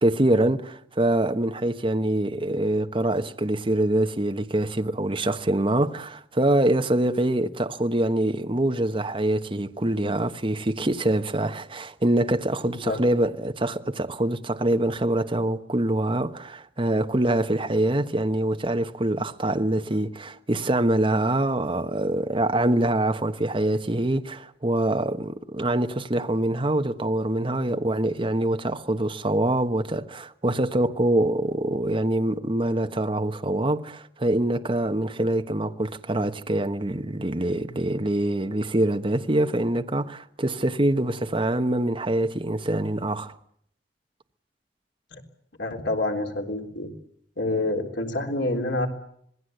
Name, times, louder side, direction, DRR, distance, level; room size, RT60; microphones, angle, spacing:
voice 1, 0.0-43.3, right 1 dB, 30° right, 1.1 m, -24 dB
voice 2, 45.6-46.9 47.4-48.9, left 2 dB, 85° left, 3.7 m, -27 dB
26.0 x 20.5 x 7.9 m
head